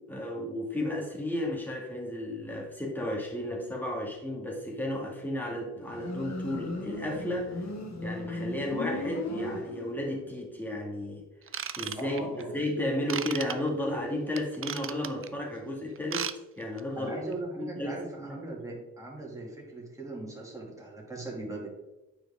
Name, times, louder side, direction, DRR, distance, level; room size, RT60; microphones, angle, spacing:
voice 1, 0.0-7.6 8.0-11.2 11.8-16.3 16.6-17.2 17.6-18.4, left 1 dB, 5° left, -2 dB, 2.1 m, -33 dB
Motorcycle, 5.8-10.2, left 2 dB, 60° left, 1.3 m, -36 dB
Ratchet pawl / Tools, 11.5-12.4 13.1-13.5 14.4-15.3 16.0-16.4 16.6-16.8 17.3-17.4, right 8 dB, 45° right, 0.4 m, -34 dB
voice 2, 11.9-12.6 17.0-21.7, right 2 dB, 10° right, -3 dB, 2.4 m, -39 dB
9.1 x 4.8 x 3.6 m, 1.0 s
wide cardioid pair, 120°, 31 cm